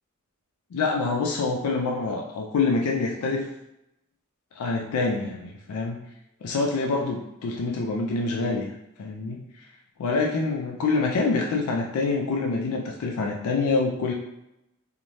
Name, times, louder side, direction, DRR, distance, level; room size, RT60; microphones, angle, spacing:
voice 1, 0.7-3.5 4.6-6.0 6.4-8.7 9.0-9.4 10.0-14.1, left 3 dB, 90° left, 0 dB, 0.3 m, -26 dB
2.6 x 2.1 x 3.1 m, 0.86 s
head